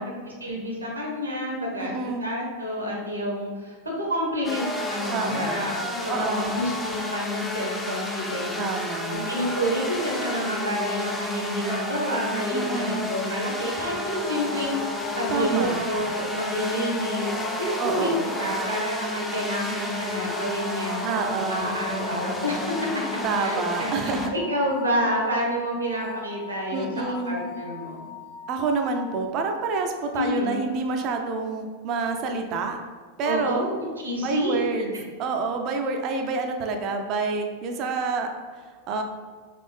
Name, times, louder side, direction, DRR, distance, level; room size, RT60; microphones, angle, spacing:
voice 1, 0.0-8.6 9.1-21.0 21.5-22.9 23.3-26.9 27.2-28.1 30.1-30.8 33.2-34.6, equal, 80° right, -2 dB, 1.1 m, -29 dB
voice 2, 1.8-2.3 5.1-5.7 6.1-6.5 8.6-9.3 12.5-13.0 15.3-15.8 17.8-18.3 21.0-21.7 23.2-24.3 26.7-27.4 28.5-32.8 33.2-33.7 34.2-34.9 35.2-39.0, right 4 dB, 35° right, 4 dB, 0.5 m, -28 dB
sound 1, 4.4-24.3, left 1 dB, 10° left, 0.6 m, -31 dB
sound 2, 14.1-29.3, left 6 dB, 70° left, 1.3 m, -42 dB
4.1 x 3.1 x 3.4 m, 1.5 s
figure-of-eight pair, 90°, 0 cm